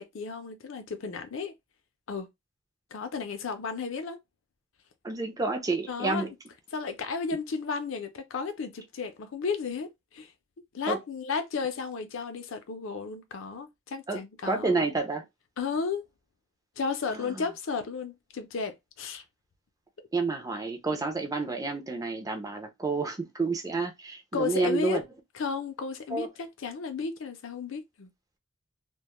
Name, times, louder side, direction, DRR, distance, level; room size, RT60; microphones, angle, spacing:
voice 1, 0.0-1.5 2.1-2.3 2.9-4.2 5.9-6.3 6.7-10.3 10.7-14.8 15.6-16.0 16.8-19.2 24.3-25.0 25.3-28.1, left 5 dB, 60° left, 0.5 m, -33 dB
voice 2, 5.0-6.3 10.9-11.0 14.1-14.2 14.5-15.2 17.1-17.4 20.1-25.0 26.1-26.3, right 3 dB, 15° right, 0.4 m, -29 dB
2.2 x 2.0 x 2.9 m
head